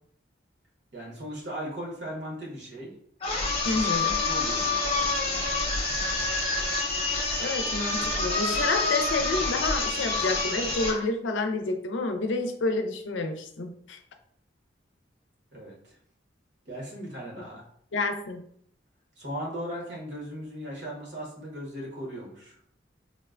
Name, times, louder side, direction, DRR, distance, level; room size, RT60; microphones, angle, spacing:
voice 1, 0.9-2.9 3.6-3.9 4.2-5.6 15.5-16.0 16.7-17.6 19.2-22.6, equal, 75° right, -3 dB, 1.1 m, -38 dB
sound 1, 3.2-11.0, left 3 dB, 30° left, 0.7 m, -27 dB
voice 2, 3.7-4.2 7.4-14.0 17.9-18.4, left 3 dB, 90° left, 6 dB, 0.4 m, -29 dB
3.8 x 2.1 x 2.4 m, 0.65 s
head